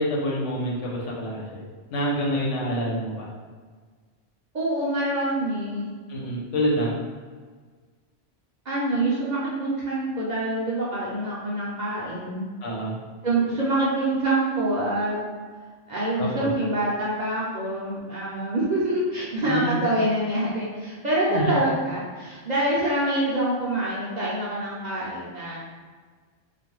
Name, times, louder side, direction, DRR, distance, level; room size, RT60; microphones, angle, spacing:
voice 1, 0.0-1.6 1.9-3.3 6.1-7.0 12.6-13.0 16.2-16.5 19.5-19.8 21.3-21.5, equal, 90° left, -4 dB, 1.0 m, -27 dB
voice 2, 4.5-5.9 8.7-12.4 13.2-15.2 15.9-25.6, right 1 dB, 55° right, -7 dB, 0.5 m, -26 dB
2.4 x 2.2 x 3.0 m, 1.5 s
omnidirectional pair, 1.2 m